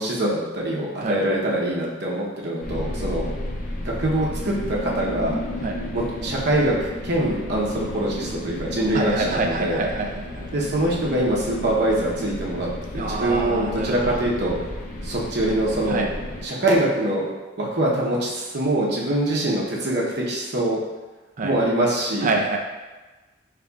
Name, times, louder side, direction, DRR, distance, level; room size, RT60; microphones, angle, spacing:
voice 1, 0.0-3.3 3.8-5.4 5.9-9.8 10.5-12.7 12.9-14.6 15.0-16.0 16.4-17.3 17.6-20.8 21.4-22.3, right 1 dB, 60° right, -4 dB, 0.9 m, -24 dB
sound 1, 2.6-16.5, left 1 dB, 45° left, 0.6 m, -32 dB
voice 2, 8.9-10.5 13.0-14.2 15.9-16.1 21.4-21.6 22.2-22.6, right 3 dB, 45° right, 1 dB, 0.5 m, -26 dB
5.3 x 3.2 x 2.4 m, 1.2 s
head